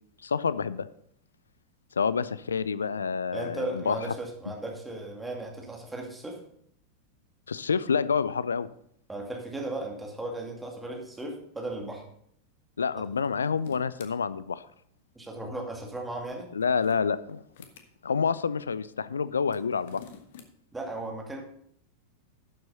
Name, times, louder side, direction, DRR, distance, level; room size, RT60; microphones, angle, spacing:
voice 1, 0.2-0.9 2.0-4.0 7.5-8.7 12.8-14.7 16.5-17.4 18.0-20.0, left 6 dB, 70° left, 16 dB, 0.4 m, -28 dB
voice 2, 3.3-6.4 9.1-12.0 15.2-16.5 20.7-21.4, right 2 dB, 10° right, 0 dB, 2.3 m, -36 dB
sound 1, 13.1-14.1 16.4-17.9 19.4-20.5, left 6 dB, 55° left, 1.2 m, -49 dB
12.0 x 7.4 x 4.1 m, 0.68 s
figure-of-eight pair, 90°, 0 cm